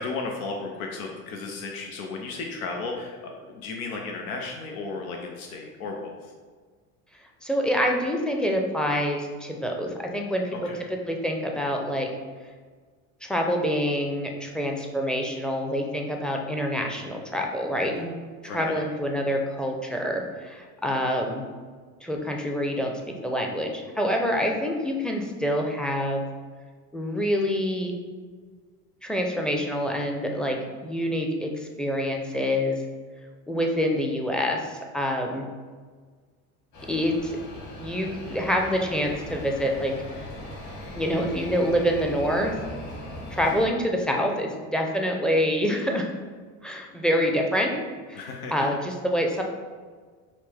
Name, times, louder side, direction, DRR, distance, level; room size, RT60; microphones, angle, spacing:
voice 1, 0.0-6.1 10.5-10.8 18.0-18.1 18.4-18.8 43.1-43.3 48.2-48.5, left 3 dB, 90° left, 1 dB, 0.7 m, -34 dB
voice 2, 7.4-12.1 13.2-18.2 18.4-21.4 22.0-22.9 23.2-26.2 26.9-27.9 29.0-32.8 33.5-35.5 36.9-37.4 37.8-39.9 40.2-40.3 40.9-42.5 43.3-46.1 46.6-47.7 48.1-48.2 48.5-49.4, equal, ahead, 1 dB, 0.5 m, -26 dB
sound 1, 36.7-43.7, left 1 dB, 45° left, 1.5 m, -39 dB
5.8 x 2.1 x 3.3 m, 1.5 s
hypercardioid pair, 85°, 42 cm